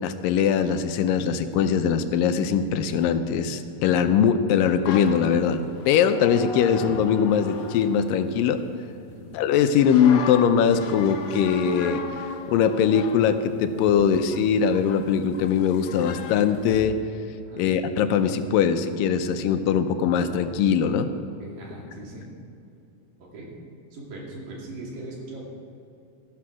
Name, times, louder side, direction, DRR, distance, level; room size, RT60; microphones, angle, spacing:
voice 1, 0.0-8.6 9.3-12.0 12.5-17.0 17.6-21.1, left 7 dB, 90° left, 9 dB, 2.4 m, -21 dB
sound 1, 4.9-8.8 9.7-16.9, left 5 dB, 70° left, 2.1 m, -37 dB
voice 2, 21.4-22.3 23.2-23.6 23.9-25.4, right 2 dB, 80° right, -3 dB, 4.2 m, -40 dB
14.0 x 12.0 x 4.8 m, 2.7 s
omnidirectional pair, 3.9 m